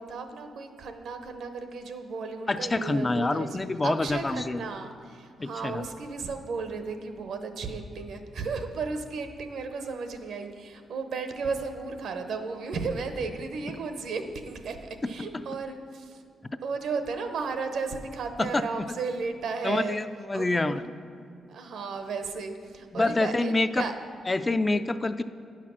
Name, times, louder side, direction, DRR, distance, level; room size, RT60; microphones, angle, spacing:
voice 1, 0.0-3.5 3.8-16.2 16.6-20.0 20.3-20.8 21.5-23.9, right 4 dB, 70° right, 7 dB, 0.8 m, -34 dB
voice 2, 2.5-4.6 5.4-5.8 15.0-15.4 18.4-18.6 19.6-20.8 22.9-23.8 24.3-25.2, left 2 dB, 20° left, 11 dB, 0.3 m, -27 dB
9.9 x 5.8 x 6.2 m, 2.5 s
cardioid pair, 120°, 0 cm